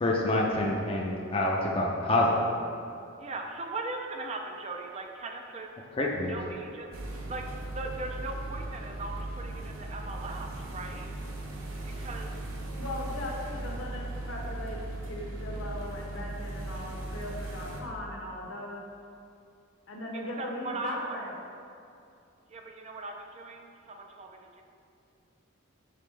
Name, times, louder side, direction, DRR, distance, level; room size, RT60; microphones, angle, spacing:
voice 1, 0.0-2.4 6.0-6.3, left 1 dB, 25° left, -2 dB, 0.5 m, -26 dB
voice 2, 3.2-5.7 6.0-11.1 12.0-12.5 20.1-21.2 22.5-24.6, right 3 dB, 30° right, 3 dB, 0.4 m, -39 dB
sound 1, 6.9-17.8, right 2 dB, 85° right, 0.8 m, -38 dB
voice 3, 12.8-18.8 19.9-21.3, left 1 dB, 70° left, -2 dB, 1.1 m, -38 dB
6.3 x 5.2 x 3.3 m, 2.5 s
head